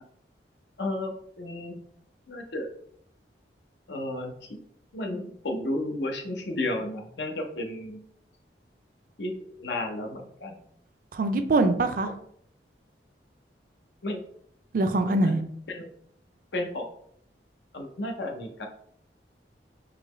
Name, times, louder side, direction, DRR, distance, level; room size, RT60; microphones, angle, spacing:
voice 1, 0.8-1.1 1.4-1.8 2.3-2.7 3.9-4.6 4.9-8.0 9.2-10.6 14.0-14.2 15.0-15.4 15.7-15.9 16.5-16.9 17.7-18.7, left 1 dB, 75° left, 4 dB, 0.7 m, -33 dB
voice 2, 11.1-12.1 14.7-15.4, right 2 dB, 50° right, 8 dB, 0.4 m, -23 dB
3.8 x 2.9 x 3.1 m, 0.65 s
head